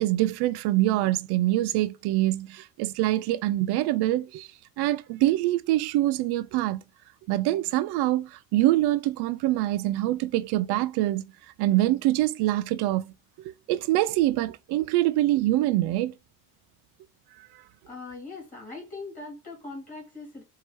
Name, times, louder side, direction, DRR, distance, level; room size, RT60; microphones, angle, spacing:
voice 1, 0.0-4.5 4.8-6.8 7.3-11.2 11.6-13.1 13.4-16.1, right 15 dB, 80° right, 0.5 m, -25 dB
voice 2, 17.9-20.4, left 3 dB, 20° left, 2.5 m, -40 dB
4.6 x 2.8 x 3.0 m
cardioid pair, 165°, 39 cm